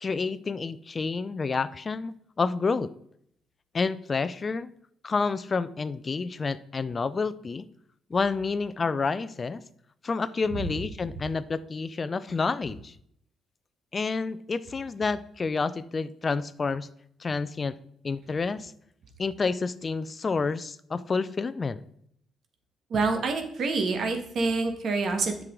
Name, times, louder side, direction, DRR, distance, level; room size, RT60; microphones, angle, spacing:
voice 1, 0.0-2.9 3.7-4.7 5.0-7.7 8.1-9.6 10.0-12.9 13.9-16.9 17.2-17.8 18.0-18.7 19.2-21.8, left 4 dB, 35° left, 15 dB, 0.4 m, -29 dB
voice 2, 22.9-25.4, right 3 dB, 60° right, 5 dB, 1.4 m, -27 dB
7.6 x 6.2 x 3.8 m, 0.68 s
cardioid pair, 90°, 0 cm